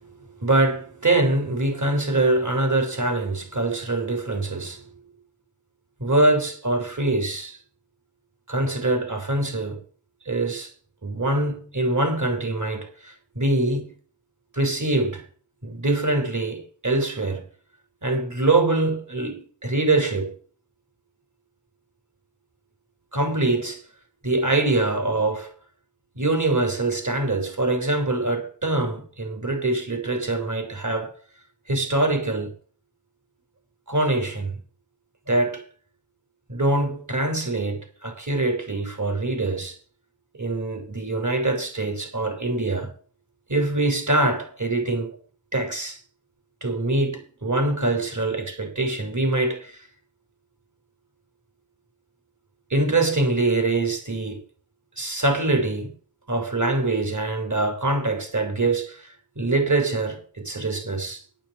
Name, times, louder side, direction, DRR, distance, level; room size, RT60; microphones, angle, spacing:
voice 1, 0.4-4.8 6.0-7.6 8.5-9.8 10.2-10.7 11.0-13.9 14.5-15.2 15.6-17.4 18.0-20.3 23.1-23.8 24.2-25.5 26.2-31.1 31.7-32.5 33.9-34.6 35.3-35.6 36.5-39.8 40.3-42.9 43.5-45.1 45.5-46.0 46.6-49.8 52.7-54.4 55.0-55.9 56.3-61.2, right 2 dB, 40° right, 6.2 m, -24 dB
9.0 x 8.9 x 8.2 m
wide cardioid pair, 60°, 44 cm